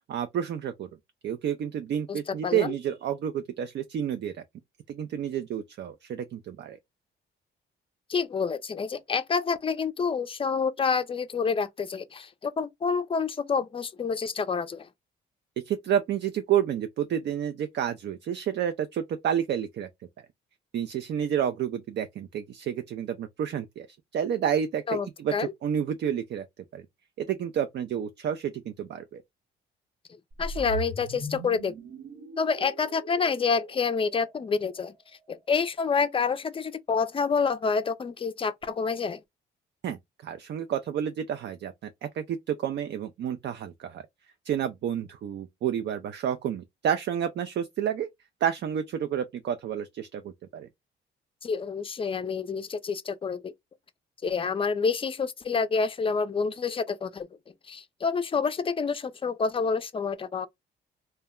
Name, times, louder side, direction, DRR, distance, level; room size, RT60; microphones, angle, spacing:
voice 1, 0.1-0.9 1.2-4.3 4.9-6.8 15.6-19.9 20.7-23.9 24.1-26.5 26.7-26.8 27.2-29.2 39.8-41.9 42.1-44.0 44.4-48.1 48.4-50.7, right 9 dB, 55° right, 0.4 m, -30 dB
voice 2, 2.1-2.7 8.1-14.9 24.9-25.5 30.4-31.7 32.4-34.9 35.3-39.2 51.4-53.5 54.2-57.3 57.7-60.5, left 5 dB, 25° left, 0.4 m, -28 dB
sound 1, 30.3-34.6, right 1 dB, 90° right, 1.1 m, -39 dB
2.2 x 2.0 x 3.5 m
cardioid pair, 75°, 21 cm